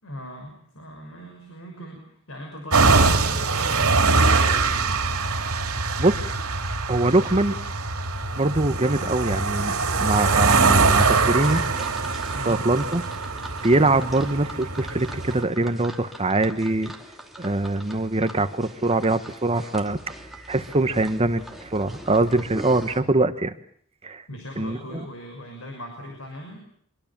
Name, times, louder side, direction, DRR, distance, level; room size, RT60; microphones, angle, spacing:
voice 1, 0.0-4.3 12.3-12.7 24.3-26.6, left 1 dB, 65° left, 3 dB, 6.2 m, -39 dB
sound 1, 2.7-15.4, right 4 dB, 75° right, 2.9 m, -23 dB
voice 2, 6.0-6.4 6.9-7.6 8.4-9.7 10.0-11.6 12.3-13.0 13.6-16.9 17.4-20.0 20.5-23.5 24.0-24.2 24.6-25.0, right 2 dB, 30° right, 11 dB, 1.1 m, -23 dB
sound 2, 10.9-23.0, right 1 dB, ahead, 2.8 m, -42 dB
25.0 x 23.0 x 7.4 m, 0.63 s
head